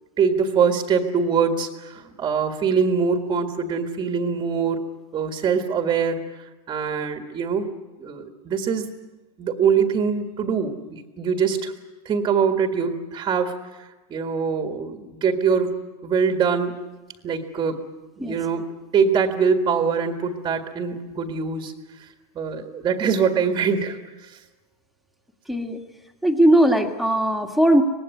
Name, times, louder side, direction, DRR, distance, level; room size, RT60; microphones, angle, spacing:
voice 1, 0.2-4.8 5.1-7.7 8.0-8.9 9.4-11.7 12.1-15.7 16.0-16.8 17.2-17.8 18.2-21.7 22.0-22.1 22.4-24.4, right 6 dB, 20° right, 5 dB, 1.8 m, -23 dB
voice 2, 25.5-25.8 26.2-27.8, right 1 dB, ahead, 3 dB, 1.9 m, -18 dB
24.5 x 19.5 x 9.6 m, 1.1 s
supercardioid pair, 160°, 20 cm